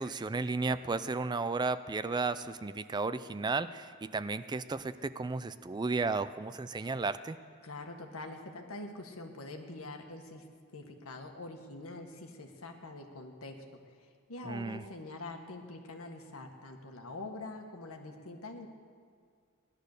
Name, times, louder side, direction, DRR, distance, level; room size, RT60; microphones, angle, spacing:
voice 1, 0.0-7.4 14.4-14.8, right 3 dB, 20° right, 14 dB, 0.3 m, -34 dB
voice 2, 7.6-10.4 10.7-18.7, left 2 dB, 85° left, 4 dB, 1.7 m, -45 dB
17.5 x 11.5 x 6.7 m, 2.2 s
head